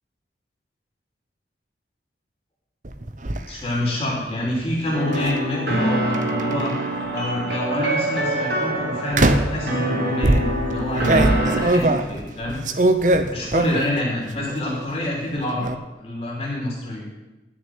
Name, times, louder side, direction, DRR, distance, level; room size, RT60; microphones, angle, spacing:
sound 1, 2.8-3.4 5.1-5.4 6.1-7.0 7.7-8.0 9.1-9.6 10.2-14.0 14.3-14.9 15.2-15.8, right 1 dB, 45° right, 0.8 m, -21 dB
voice 1, 3.5-12.6 13.3-15.7 16.0-17.1, left 1 dB, 25° left, -3 dB, 3.2 m, -27 dB
sound 2, 4.9-11.6, right 1 dB, 65° right, 3.8 m, -25 dB
13.0 x 6.5 x 9.4 m, 1.0 s
head